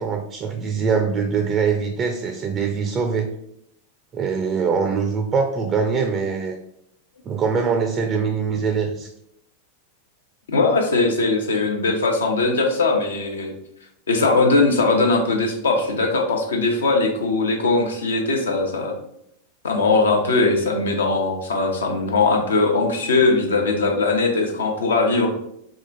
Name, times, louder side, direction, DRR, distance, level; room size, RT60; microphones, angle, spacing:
voice 1, 0.0-3.3 4.1-6.6 7.2-9.1, right 5 dB, 25° right, 4 dB, 0.5 m, -23 dB
voice 2, 10.5-13.5 14.1-18.9 19.6-25.3, left 3 dB, 65° left, 1 dB, 0.8 m, -20 dB
4.1 x 2.4 x 3.8 m, 0.74 s
figure-of-eight pair, 90°, 0 cm